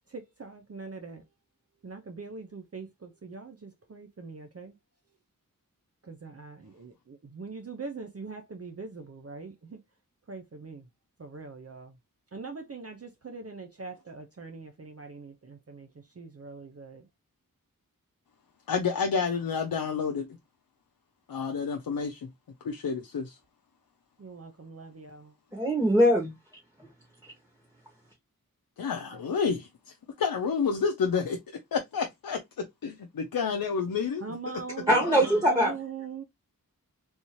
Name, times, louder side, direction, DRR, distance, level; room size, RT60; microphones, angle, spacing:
voice 1, 0.1-1.2 1.8-4.7 6.0-9.8 10.3-10.9 11.2-12.0 12.3-15.9 16.2-17.0 24.2-25.3 34.2-36.2, right 4 dB, 45° right, 0.6 m, -42 dB
voice 2, 18.7-20.3 21.3-22.2 22.6-23.4 28.8-31.4 31.7-34.2 34.9-35.2, left 5 dB, 90° left, 0.5 m, -30 dB
voice 3, 25.5-26.4 34.9-35.8, equal, 10° right, 1.6 m, -22 dB
3.5 x 2.7 x 3.0 m
wide cardioid pair, 40°, 34 cm